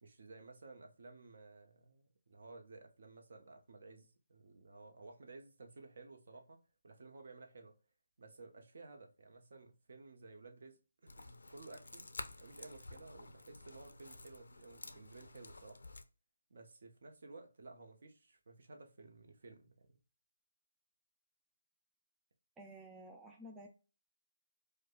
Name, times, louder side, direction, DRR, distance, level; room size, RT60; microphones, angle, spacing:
voice 1, 0.0-6.6 6.8-7.7 8.2-12.1 12.4-15.8 16.5-19.9, right 3 dB, 60° right, 0.9 m, -55 dB
sound 1, 11.1-16.0, left 2 dB, 90° left, 0.5 m, -51 dB
voice 2, 22.6-23.7, right 1 dB, 10° right, 0.3 m, -52 dB
4.9 x 2.2 x 2.3 m
hypercardioid pair, 165°, 0 cm